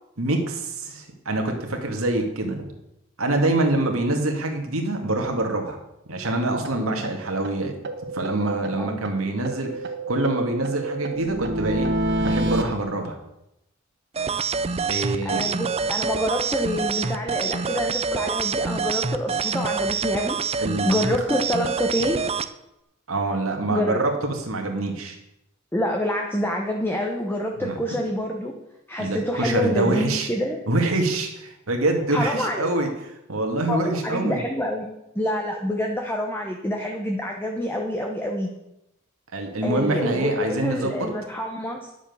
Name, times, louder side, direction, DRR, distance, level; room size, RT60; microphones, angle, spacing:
voice 1, 0.2-2.7 3.2-5.8 6.1-7.7 8.1-9.8 10.1-11.9 12.2-13.2 14.9-15.5 20.6-21.0 23.1-25.2 27.6-27.8 29.0-30.3 30.7-32.9 33.3-34.4 39.3-41.1, right 2 dB, 80° right, 3 dB, 2.1 m, -25 dB
sound 1, 6.2-6.3 6.6-6.7 7.0-7.1 7.4-7.5 7.8-9.1 9.4-12.6, right 1 dB, 55° right, 1.2 m, -27 dB
voice 2, 6.8-7.1 8.8-9.0 15.2-22.2 23.7-24.0 25.7-28.5 28.9-30.6 32.1-32.7 33.7-34.9 35.1-38.5 39.6-41.9, left 1 dB, 10° left, 1 dB, 1.0 m, -27 dB
sound 2, 14.1-22.5, right 5 dB, 30° right, 0.5 m, -26 dB
10.0 x 7.4 x 7.1 m, 0.87 s
head